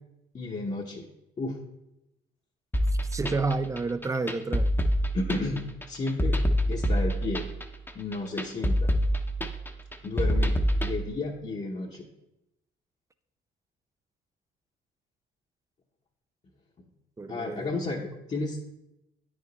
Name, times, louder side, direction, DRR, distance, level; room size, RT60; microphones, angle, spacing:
voice 1, 0.3-1.1 1.4-1.6 5.1-6.4 6.7-7.4 7.9-8.9 10.0-10.5 10.8-12.1 17.3-18.7, left 3 dB, 35° left, -2 dB, 1.0 m, -32 dB
sound 1, 2.7-10.9, equal, 10° left, 0.8 m, -26 dB
voice 2, 3.1-4.7 17.2-17.8, right 3 dB, 15° right, 12 dB, 0.4 m, -30 dB
9.2 x 5.1 x 4.1 m, 0.88 s
cardioid pair, 90°, 20 cm